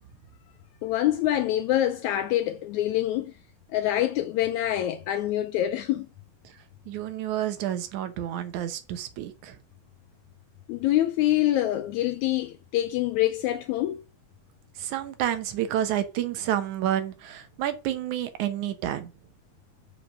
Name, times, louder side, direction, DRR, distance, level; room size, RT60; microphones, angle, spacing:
voice 1, 0.8-3.3 3.7-6.1 10.7-14.0, left 13 dB, 80° left, 1.8 m, -25 dB
voice 2, 6.9-9.6 14.8-19.1, right 11 dB, 70° right, 2.2 m, -29 dB
5.8 x 4.9 x 6.4 m
omnidirectional pair, 3.7 m